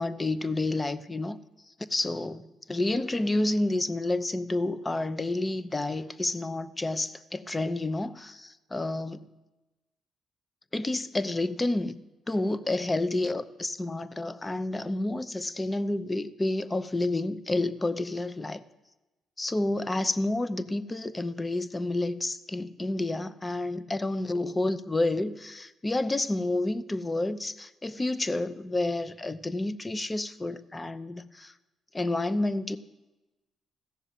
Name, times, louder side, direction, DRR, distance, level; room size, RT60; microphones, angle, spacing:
voice 1, 0.0-1.4 1.9-9.3 10.7-12.0 12.3-18.6 19.4-31.5 31.9-32.8, left 2 dB, 20° left, 0.8 m, -29 dB
15.5 x 7.0 x 9.2 m
cardioid pair, 80°, 0 cm